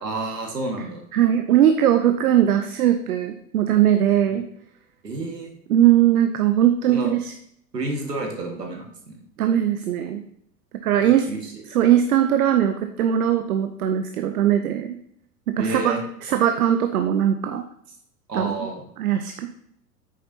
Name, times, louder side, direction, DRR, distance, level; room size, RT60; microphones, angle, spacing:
voice 1, 0.0-1.0 5.0-5.5 6.9-7.1 7.7-9.2 11.0-11.5 15.6-16.0 18.3-18.8, right 2 dB, 80° right, 1 dB, 1.8 m, -30 dB
voice 2, 1.1-4.4 5.7-7.3 9.4-10.2 10.8-11.3 11.7-15.0 15.6-15.9 16.2-17.6 18.3-18.7 19.0-19.5, right 10 dB, 65° right, 7 dB, 0.8 m, -20 dB
8.6 x 6.7 x 2.8 m, 0.71 s
figure-of-eight pair, 90°, 47 cm